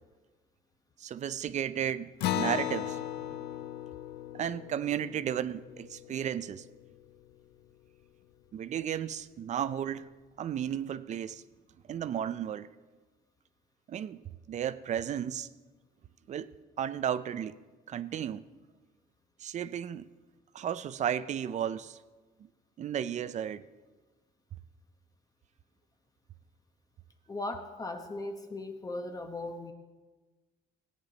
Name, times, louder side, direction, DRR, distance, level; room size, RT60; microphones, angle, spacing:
voice 1, 1.0-3.4 4.3-6.6 8.5-10.1 10.4-11.4 11.9-12.7 13.9-14.2 14.5-15.5 16.3-16.5 16.8-17.5 17.9-18.4 19.4-20.1 20.5-22.0 22.4-22.5 22.8-23.7, right 9 dB, 45° right, 0.5 m, -34 dB
Acoustic guitar, 2.2-7.1, left 12 dB, 75° left, 0.5 m, -37 dB
voice 2, 27.3-29.7, left 2 dB, 20° left, 0.9 m, -38 dB
17.0 x 9.2 x 3.9 m
cardioid pair, 110°, 17 cm